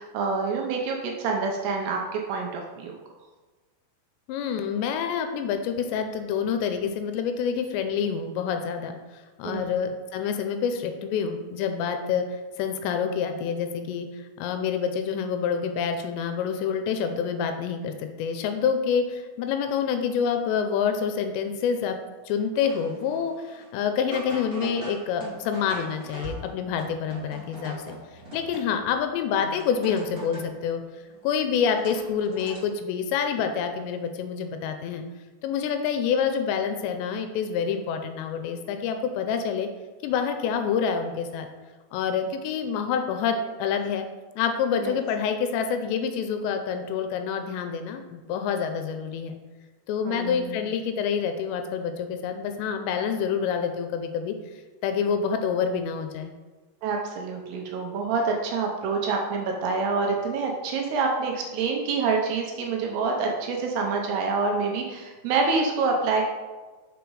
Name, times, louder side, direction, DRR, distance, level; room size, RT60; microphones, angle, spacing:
voice 1, 0.0-3.0 9.4-9.8 44.8-45.0 50.1-50.6 56.8-66.2, right 4 dB, 75° right, 1 dB, 2.6 m, -27 dB
voice 2, 4.3-22.0 22.3-28.0 28.3-30.8 31.2-35.0 35.4-39.7 40.0-41.5 41.9-44.1 44.4-49.3 49.9-54.4 54.8-56.3, left 7 dB, 80° left, 6 dB, 2.7 m, -27 dB
sound 1, 22.6-23.8 24.1-29.0 29.4-30.6 31.1-32.6, right 1 dB, 50° right, 1.1 m, -41 dB
6.2 x 5.1 x 4.7 m, 1.3 s
omnidirectional pair, 5.1 m